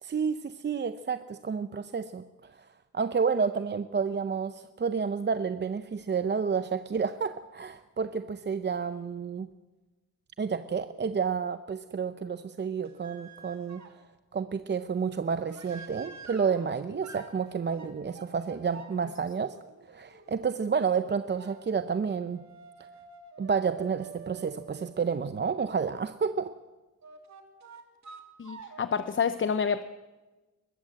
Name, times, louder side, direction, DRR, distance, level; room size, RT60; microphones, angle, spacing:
voice 1, 0.0-2.2 2.6-2.7 2.9-9.5 10.4-13.8 14.3-19.6 19.9-22.4 23.4-26.5, right 6 dB, 35° right, 11 dB, 0.7 m, -30 dB
sound 1, 12.8-14.0 15.5-25.0 27.0-29.1, right 6 dB, 60° right, 2.7 m, -49 dB
voice 2, 28.4-29.8, left 6 dB, 40° left, 12 dB, 0.7 m, -28 dB
22.5 x 20.0 x 7.7 m, 1.2 s
wide cardioid pair, 170°, 32 cm